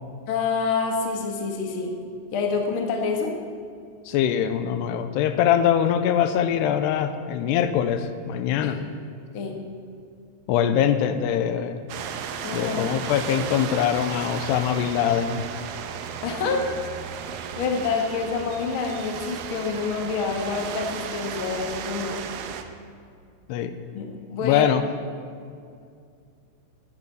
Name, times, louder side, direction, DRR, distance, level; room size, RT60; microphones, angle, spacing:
voice 1, 0.3-1.9 2.3-3.3 8.6-8.7 9.3-9.6 12.4-12.9 16.2-16.7 17.6-22.2 23.9-24.7, left 5 dB, 65° left, 2 dB, 1.2 m, -27 dB
voice 2, 4.1-8.8 10.5-11.8 12.5-15.4 23.5-23.7 24.4-24.8, left 9 dB, 85° left, 10 dB, 2.7 m, -23 dB
sound 1, 11.9-22.6, right 8 dB, 75° right, 2.1 m, -34 dB
11.0 x 10.0 x 8.3 m, 2.3 s
omnidirectional pair, 4.9 m